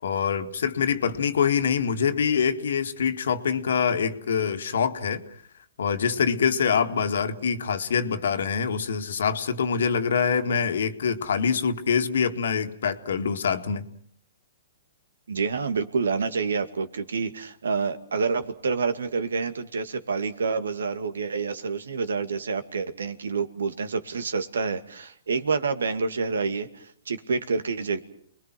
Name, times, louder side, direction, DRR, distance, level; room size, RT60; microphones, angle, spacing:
voice 1, 0.0-5.2 5.8-13.9, left 6 dB, 75° left, 9 dB, 2.0 m, -25 dB
voice 2, 15.3-28.0, right 5 dB, 90° right, 10 dB, 2.3 m, -28 dB
29.5 x 21.5 x 6.1 m, 0.62 s
hypercardioid pair, 140°, 0 cm